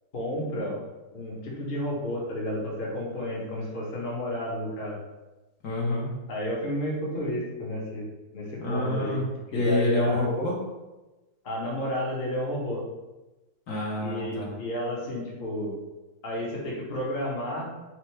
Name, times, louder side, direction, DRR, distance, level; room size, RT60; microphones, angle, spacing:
voice 1, 0.1-0.8 1.1-5.0 6.3-8.1 8.3-9.2 9.5-10.3 11.4-12.8 14.0-15.8 16.2-17.7, equal, 40° left, -4 dB, 0.9 m, -31 dB
voice 2, 5.6-6.1 8.6-9.3 9.5-10.6 13.7-14.5, left 2 dB, 60° left, -4 dB, 1.4 m, -27 dB
4.4 x 2.4 x 4.5 m, 1.1 s
omnidirectional pair, 1.9 m